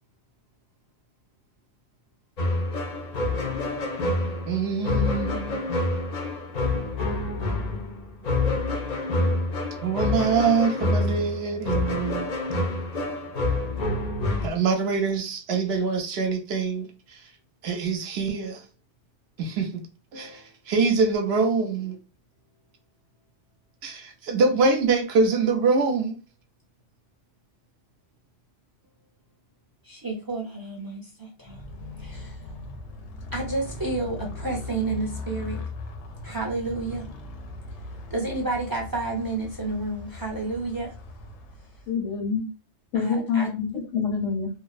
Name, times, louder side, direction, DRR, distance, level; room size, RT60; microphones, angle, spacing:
sound 1, 2.4-14.5, left 2 dB, 50° left, 0.5 m, -27 dB
voice 1, 4.5-5.6 9.8-12.3 14.4-16.9 17.6-18.6 19.4-19.8 20.1-22.0 23.8-26.1, right 4 dB, 65° right, 0.8 m, -24 dB
voice 2, 29.8-31.6 32.0-32.4 33.3-35.6 36.2-37.1 38.1-40.9 42.9-43.5, right 3 dB, 30° right, 0.4 m, -30 dB
Motorcycle, 31.4-42.1, left 2 dB, 75° left, 0.9 m, -39 dB
voice 3, 41.9-42.4 42.9-44.5, left 6 dB, 90° left, 1.1 m, -26 dB
2.6 x 2.0 x 2.3 m
omnidirectional pair, 1.2 m